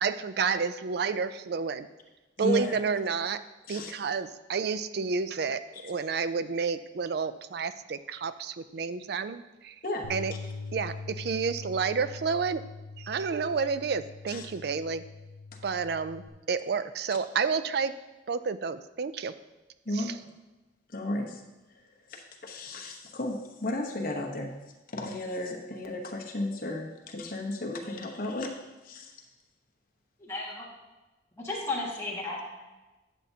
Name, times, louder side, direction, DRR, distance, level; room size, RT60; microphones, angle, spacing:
voice 1, 0.0-1.9 2.4-3.4 3.7-9.8 10.1-10.3 10.7-12.6 13.0-15.0 15.6-17.9 18.3-19.3 19.9-20.1, right 5 dB, 55° right, 13 dB, 0.3 m, -30 dB
voice 2, 2.4-2.8 3.7-3.9 5.8-5.9 9.8-10.1 14.3-14.5 17.1-17.2 19.8-20.1 20.9-21.4 22.1-24.5 24.9-28.5 28.8-29.1, left 1 dB, 45° left, 2 dB, 1.0 m, -34 dB
Bass guitar, 10.0-16.3, left 4 dB, 75° left, 0.6 m, -42 dB
voice 3, 30.2-30.7 31.4-32.6, left 2 dB, 15° left, -4 dB, 1.7 m, -34 dB
11.5 x 7.1 x 2.8 m, 1.1 s
head